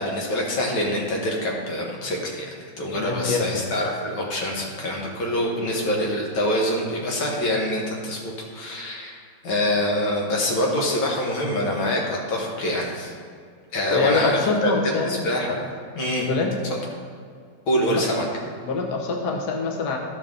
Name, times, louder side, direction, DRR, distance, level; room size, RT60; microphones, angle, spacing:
voice 1, 0.0-9.2 9.4-13.1 13.7-14.7 15.0-15.7 15.9-16.3 17.7-18.3, left 1 dB, 85° left, -1 dB, 2.1 m, -25 dB
voice 2, 2.9-3.7 5.7-5.8 13.9-15.2 16.3-16.5 17.9-18.0 18.6-20.0, left 3 dB, 65° left, 2 dB, 1.3 m, -25 dB
12.0 x 5.3 x 3.7 m, 2.2 s
omnidirectional pair, 2.1 m